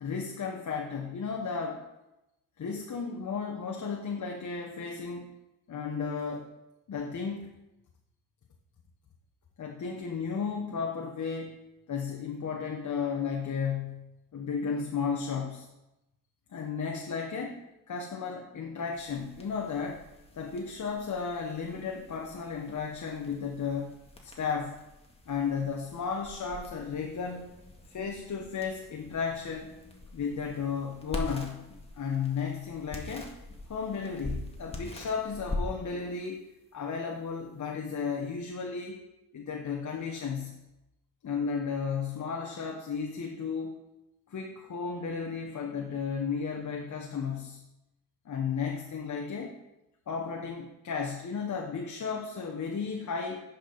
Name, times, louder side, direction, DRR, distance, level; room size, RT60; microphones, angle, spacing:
voice 1, 0.0-1.8 2.6-5.3 5.7-6.5 6.9-7.5 9.6-11.6 11.9-15.7 16.5-20.0 20.3-24.8 25.3-27.5 27.9-29.8 30.1-31.7 32.0-33.3 33.7-36.4 36.7-39.0 39.3-40.6 41.2-43.8 44.3-47.6 48.2-49.5 50.1-53.4, left 5 dB, 50° left, 1 dB, 1.2 m, -34 dB
sound 1, 18.9-38.5, left 2 dB, 15° left, 2.0 m, -44 dB
10.0 x 5.6 x 4.1 m, 0.94 s
supercardioid pair, 50°, 39 cm